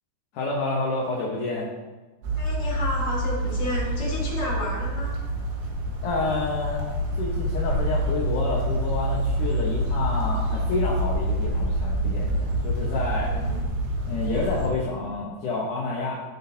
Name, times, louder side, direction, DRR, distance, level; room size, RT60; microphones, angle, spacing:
voice 1, 0.3-1.7 5.8-6.9 7.1-13.4 14.1-16.2, left 3 dB, 65° left, -5 dB, 2.0 m, -29 dB
sound 1, 2.2-14.7, right 1 dB, 85° right, 3.9 m, -27 dB
voice 2, 2.4-5.2 13.2-13.6, left 1 dB, 25° left, -6 dB, 3.5 m, -31 dB
18.0 x 6.2 x 2.8 m, 1.3 s
omnidirectional pair, 5.2 m